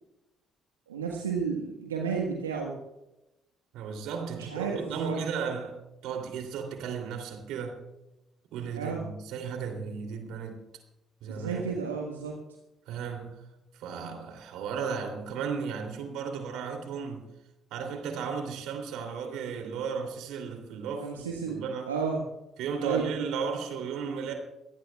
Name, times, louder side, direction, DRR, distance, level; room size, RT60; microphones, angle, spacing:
voice 1, 0.9-2.7 4.3-5.2 8.7-9.0 11.3-12.3 21.0-22.2 22.8-23.1, right 5 dB, 90° right, 1.4 m, -32 dB
voice 2, 3.7-7.8 8.5-10.6 11.2-11.6 12.9-13.4 13.7-17.3 17.7-21.1 21.5-21.9 22.6-24.3, right 6 dB, 65° right, 2.9 m, -34 dB
25.0 x 18.0 x 2.4 m
hypercardioid pair, 45°, 0 cm